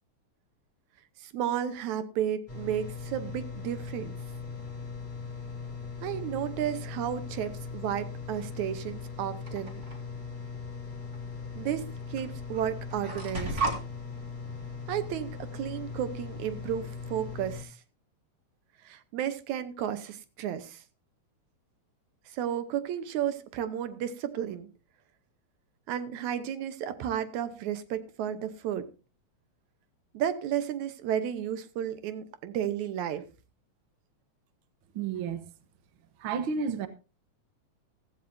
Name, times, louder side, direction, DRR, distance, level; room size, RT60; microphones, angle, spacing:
voice 1, 1.2-4.2 6.0-9.8 11.6-11.8 12.1-13.6 14.9-17.8 18.8-20.8 22.3-24.7 25.9-28.9 30.1-33.2, right 10 dB, 80° right, 2.3 m, -33 dB
sound 1, 2.5-17.6, left 5 dB, 20° left, 2.6 m, -40 dB
sound 2, 9.5-10.0 11.1-11.2 12.2-12.3 12.5-13.8, right 3 dB, 25° right, 2.2 m, -33 dB
voice 2, 34.9-35.4 36.2-36.9, right 6 dB, 55° right, 1.7 m, -31 dB
15.5 x 15.0 x 2.7 m
omnidirectional pair, 3.3 m